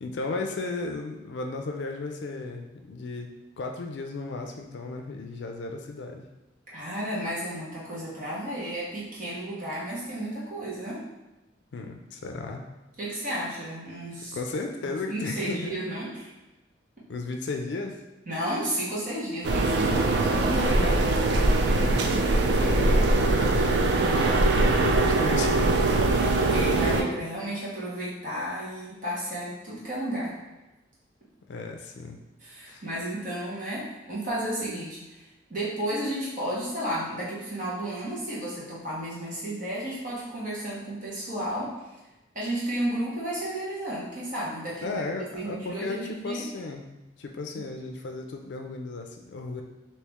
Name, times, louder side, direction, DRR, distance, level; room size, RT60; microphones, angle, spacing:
voice 1, 0.0-3.3 3.6-6.3 11.7-12.6 14.3-15.8 17.1-18.0 20.4-21.2 21.7-22.0 22.4-23.8 24.1-25.8 31.5-32.2 32.6-32.8 44.8-46.9 47.2-49.6, left 3 dB, 75° left, 3 dB, 0.4 m, -35 dB
voice 2, 6.7-11.0 13.0-14.4 14.8-16.3 18.3-20.6 26.1-30.4 32.4-35.2 35.5-41.7 42.3-46.5, right 1 dB, 45° right, -7 dB, 1.2 m, -33 dB
sound 1, 19.4-27.0, right 2 dB, 70° right, 0.4 m, -22 dB
3.1 x 2.8 x 3.5 m, 1.0 s
head